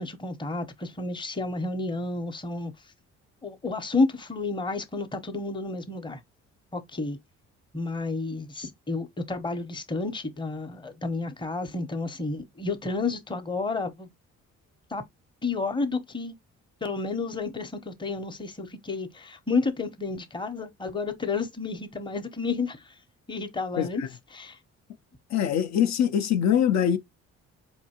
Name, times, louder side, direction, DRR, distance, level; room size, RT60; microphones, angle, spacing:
voice 1, 0.0-2.7 3.4-6.2 6.7-7.2 7.7-14.1 14.9-15.0 15.4-16.4 16.8-22.8 23.3-24.0 24.3-24.6, left 3 dB, 15° left, 0.8 m, -31 dB
voice 2, 23.8-24.1 25.3-27.0, left 9 dB, 65° left, 0.6 m, -23 dB
4.3 x 2.6 x 2.8 m
cardioid pair, 90°, 30 cm